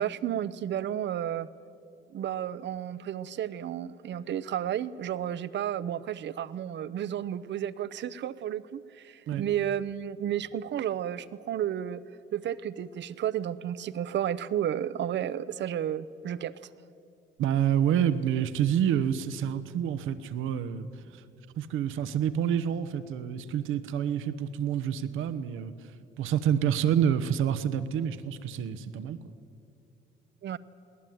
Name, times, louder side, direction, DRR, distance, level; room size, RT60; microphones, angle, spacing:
voice 1, 0.0-1.5 2.1-12.0 12.3-16.6 30.4-30.6, right 10 dB, 65° right, 16 dB, 0.7 m, -32 dB
voice 2, 17.4-20.9 21.1-21.2 21.6-25.7 26.2-29.2, right 9 dB, 85° right, 13 dB, 1.0 m, -28 dB
21.0 x 18.5 x 9.3 m, 2.6 s
cardioid pair, 90°, 20 cm